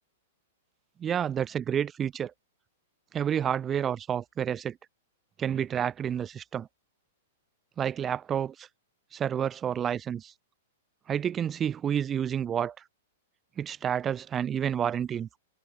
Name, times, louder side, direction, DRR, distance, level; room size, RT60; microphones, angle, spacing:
voice 1, 1.0-2.3 3.1-4.8 5.4-6.7 7.8-8.7 9.1-10.3 11.1-12.7 13.6-15.4, right 9 dB, 25° right, 3.0 m, -29 dB
hypercardioid pair, 120°, 0 cm